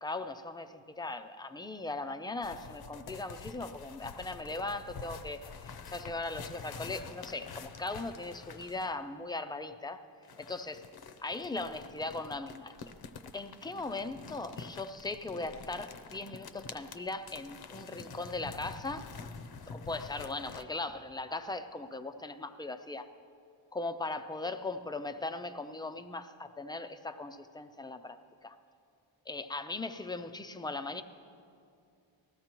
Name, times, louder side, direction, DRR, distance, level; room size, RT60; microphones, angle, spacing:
voice 1, 0.0-10.0 10.4-10.8 11.2-12.7 13.3-19.1 19.7-23.1 23.7-28.6 29.3-31.0, left 2 dB, 10° left, 8 dB, 0.3 m, -39 dB
sound 1, 2.4-9.0 10.2-20.6, left 5 dB, 50° left, 0.6 m, -47 dB
20.0 x 14.5 x 3.0 m, 2.5 s
wide cardioid pair, 155°, 48 cm